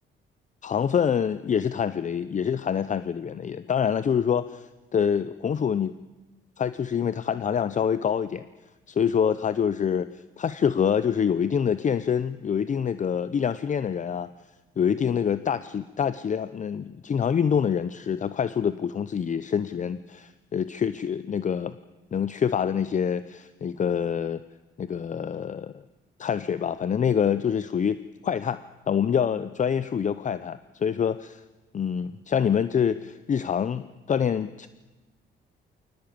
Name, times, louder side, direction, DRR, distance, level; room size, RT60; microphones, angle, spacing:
voice 1, 0.6-5.9 6.6-8.5 8.9-14.3 14.8-21.8 22.1-24.4 24.8-25.7 26.2-28.0 28.2-28.6 28.9-31.4 31.7-34.7, left 7 dB, 40° left, 14 dB, 0.7 m, -26 dB
22.0 x 18.5 x 8.7 m, 1.2 s
cardioid pair, 90°, 20 cm